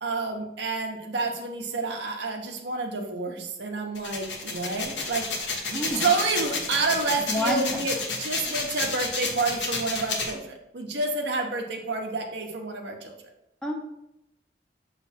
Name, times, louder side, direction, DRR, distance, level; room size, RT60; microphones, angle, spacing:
voice 1, 0.0-5.2 5.7-13.1, right 3 dB, 75° right, 2 dB, 0.9 m, -29 dB
sound 1, 3.9-10.3, left 4 dB, 80° left, 1.1 m, -30 dB
voice 2, 5.7-6.1 7.3-7.9 13.6-13.7, left 1 dB, 5° left, 0 dB, 0.6 m, -28 dB
7.0 x 3.3 x 4.2 m, 0.82 s
head